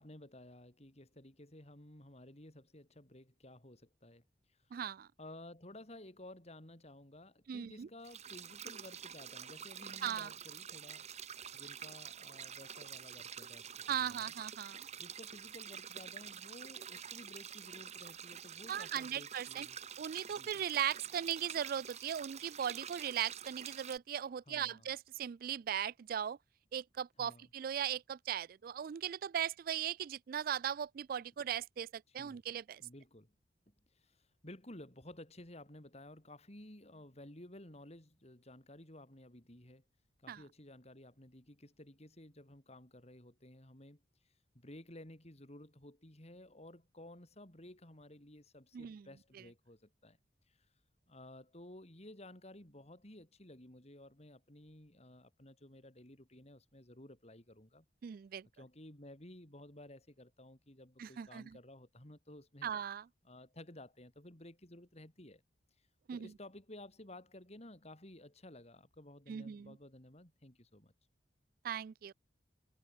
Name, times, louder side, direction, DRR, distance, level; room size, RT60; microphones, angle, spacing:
voice 1, 0.0-4.8 5.2-11.1 11.5-14.3 15.0-19.8 20.3-20.5 24.5-24.9 27.2-27.5 32.1-32.4 32.8-33.3 33.9-39.8 40.2-50.2 50.5-50.7 51.1-57.8 58.5-62.7 63.2-65.4 65.8-70.9, left 1 dB, 40° left, 4.3 m, -55 dB
voice 2, 4.7-5.1 7.5-7.9 10.0-10.3 13.9-14.9 18.7-19.7 20.0-26.4 26.7-32.8 40.3-40.4 48.7-49.1 58.0-58.5 61.0-61.6 62.6-63.1 66.1-66.3 69.3-69.7 71.6-72.1, right 9 dB, 55° right, 0.3 m, -38 dB
sound 1, 8.0-24.0, right 8 dB, 40° right, 1.3 m, -48 dB
head